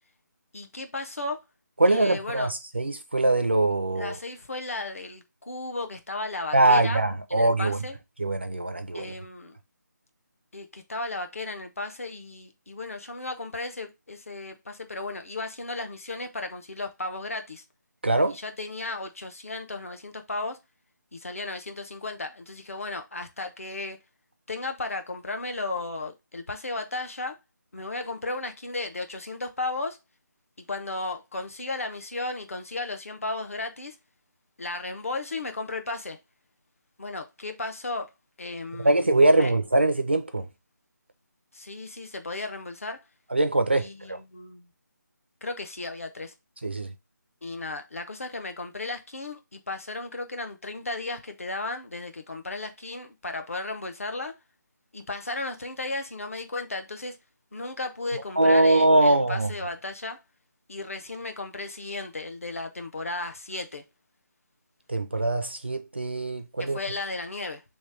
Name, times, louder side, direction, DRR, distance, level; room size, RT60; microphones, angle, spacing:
voice 1, 0.5-1.4 1.9-2.5 4.0-7.0 7.3-8.0 8.9-9.6 10.5-17.6 18.3-20.6 21.1-24.0 24.5-27.4 27.7-30.0 30.6-34.0 34.6-36.2 37.0-38.1 38.4-39.5 41.5-43.0 43.8-44.7 45.4-46.3 47.4-54.3 54.9-57.2 57.5-60.2 60.7-63.8 66.6-67.6, left 2 dB, 45° left, 0.8 m, -35 dB
voice 2, 1.8-4.1 6.5-7.8 8.2-9.1 18.0-18.4 38.8-40.5 43.3-44.2 46.6-46.9 58.4-59.5 64.9-66.8, right 2 dB, 35° right, 0.4 m, -22 dB
3.3 x 3.1 x 4.8 m
figure-of-eight pair, 180°, 10 cm